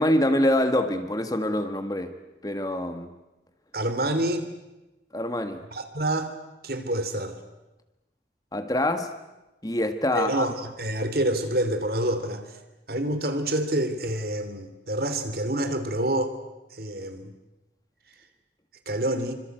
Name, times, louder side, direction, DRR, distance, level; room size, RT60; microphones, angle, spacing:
voice 1, 0.0-2.1 2.4-3.1 5.1-5.6 8.5-9.1 9.6-10.5, left 1 dB, 20° left, 8 dB, 1.7 m, -25 dB
voice 2, 3.7-4.5 5.7-6.3 6.6-7.4 10.1-12.5 12.9-16.3 16.7-17.3 18.9-19.3, right 1 dB, 55° right, 9 dB, 2.9 m, -27 dB
26.5 x 25.0 x 7.9 m, 1.0 s
head